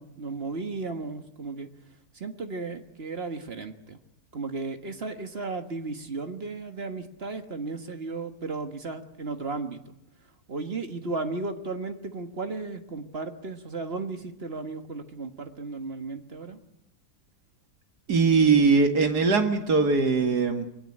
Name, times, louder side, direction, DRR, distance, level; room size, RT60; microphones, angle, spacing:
voice 1, 0.0-1.7 2.1-4.0 4.3-9.9 10.5-16.6, right 3 dB, 40° right, 7 dB, 1.6 m, -35 dB
voice 2, 18.1-20.7, right 4 dB, 85° right, 6 dB, 2.6 m, -21 dB
23.0 x 17.0 x 10.0 m, 0.85 s
omnidirectional pair, 1.7 m